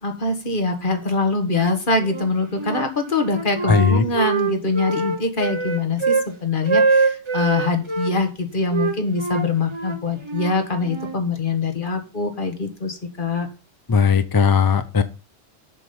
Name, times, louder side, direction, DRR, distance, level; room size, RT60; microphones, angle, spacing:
voice 1, 0.0-13.5, left 3 dB, 50° left, 6 dB, 1.6 m, -23 dB
Wind instrument woodwind instrument, 2.0-2.9 3.2-6.3 6.6-8.1 8.7-11.2, right 4 dB, 25° right, 1.0 m, -23 dB
voice 2, 3.7-4.0 13.9-15.0, left 6 dB, 30° left, 11 dB, 0.4 m, -17 dB
7.5 x 6.2 x 5.2 m, 0.33 s
omnidirectional pair, 1.1 m